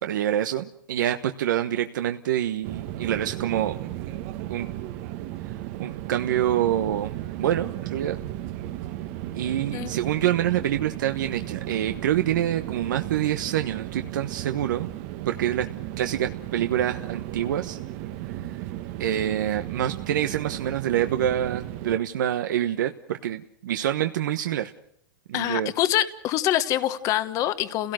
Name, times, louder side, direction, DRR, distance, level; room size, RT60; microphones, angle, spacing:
voice 1, 0.0-3.8 4.5-4.7 5.8-8.2 9.3-14.9 15.3-15.7 16.0-17.8 19.0-24.7 25.3-25.7, right 11 dB, 80° right, 6 dB, 1.2 m, -26 dB
sound 1, 2.6-22.0, right 14 dB, 50° right, 1.3 m, -35 dB
voice 2, 25.3-27.9, left 13 dB, 35° left, 12 dB, 1.2 m, -25 dB
30.0 x 17.5 x 6.4 m, 0.69 s
supercardioid pair, 150°, 10 cm